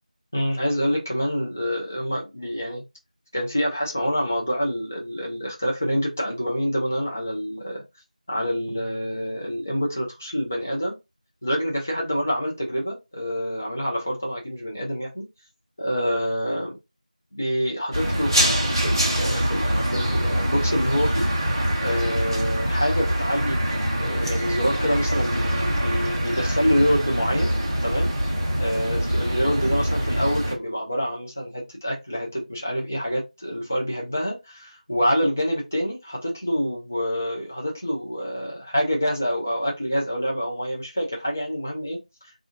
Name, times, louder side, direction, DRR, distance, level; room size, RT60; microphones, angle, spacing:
voice 1, 0.3-2.8 3.3-7.8 8.3-10.9 11.4-15.2 15.8-16.8 17.3-21.3 21.8-27.5 27.8-28.1 28.6-42.3, equal, 20° left, 0.4 m, -26 dB
sound 1, 17.9-30.5, equal, 30° right, 0.6 m, -24 dB
2.5 x 2.4 x 2.5 m
figure-of-eight pair, 175°, 4 cm